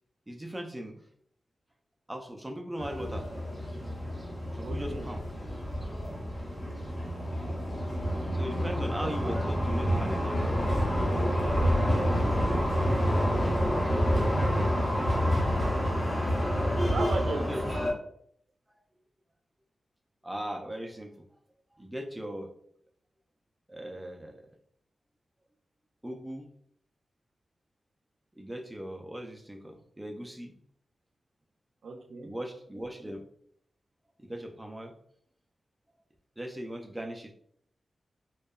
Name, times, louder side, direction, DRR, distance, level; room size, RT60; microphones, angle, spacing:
voice 1, 0.3-1.0 2.1-3.3 4.5-5.2 6.4-6.5 8.3-10.4 17.3-17.9 20.2-21.1 21.7-22.5 23.7-24.4 26.0-26.5 28.4-30.5 32.2-33.2 34.2-34.9 36.4-37.3, equal, 10° right, 3 dB, 0.3 m, -39 dB
sound 1, 2.8-17.9, equal, 20° left, 0.7 m, -28 dB
voice 2, 4.6-5.0 9.0-9.4 11.6-12.0 16.9-17.5 31.8-32.3, right 3 dB, 85° right, 4 dB, 0.4 m, -36 dB
2.6 x 2.2 x 2.2 m, 0.67 s
wide cardioid pair, 100°, 0 cm